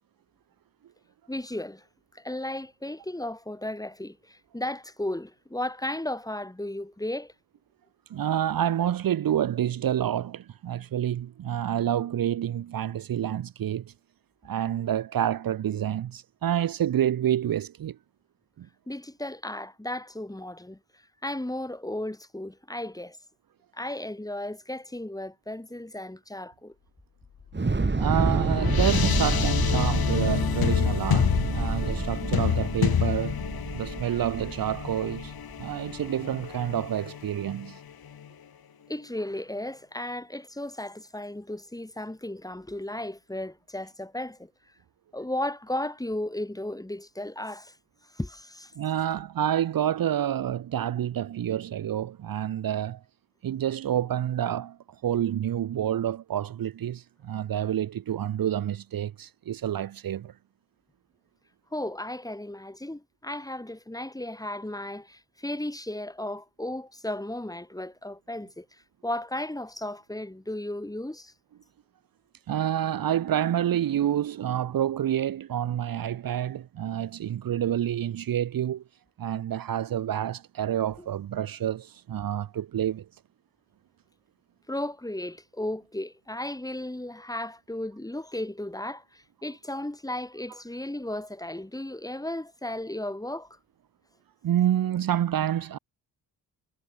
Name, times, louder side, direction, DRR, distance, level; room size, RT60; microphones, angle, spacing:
voice 1, 1.3-1.9 2.1-7.3 18.9-20.8 21.2-23.2 23.7-26.7 38.9-44.5 45.1-47.8 48.1-48.7 61.7-71.3 84.7-93.6, left 1 dB, 10° left, 4.7 m, -35 dB
voice 2, 8.1-13.9 14.4-18.0 18.6-18.7 28.0-33.4 33.7-35.3 35.6-37.8 48.8-53.0 53.4-60.3 72.5-78.8 79.2-83.1 94.4-95.8, right 10 dB, 60° right, 1.1 m, -28 dB
sound 1, 27.5-38.3, left 9 dB, 65° left, 5.2 m, -29 dB
Thunder / Explosion, 27.5-35.7, right 3 dB, 25° right, 6.7 m, -29 dB
cardioid pair, 75°, 39 cm